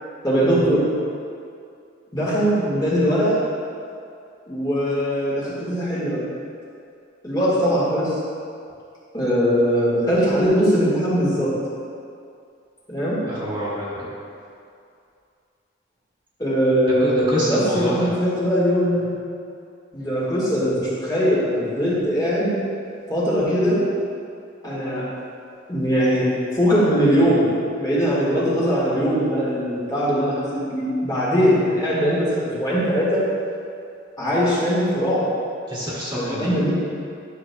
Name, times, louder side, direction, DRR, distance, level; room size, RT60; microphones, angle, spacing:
voice 1, 0.2-0.8 2.1-3.4 4.5-6.2 7.2-8.2 9.1-11.5 12.9-13.2 16.4-19.2 19.9-22.5 23.1-23.9 24.6-25.1 25.7-33.3 34.2-35.3 36.1-36.7, equal, 20° left, -8 dB, 1.7 m, -21 dB
voice 2, 13.2-14.1 17.0-18.1 35.7-36.5, equal, 25° right, -8 dB, 1.6 m, -26 dB
11.0 x 6.3 x 2.3 m, 2.4 s
head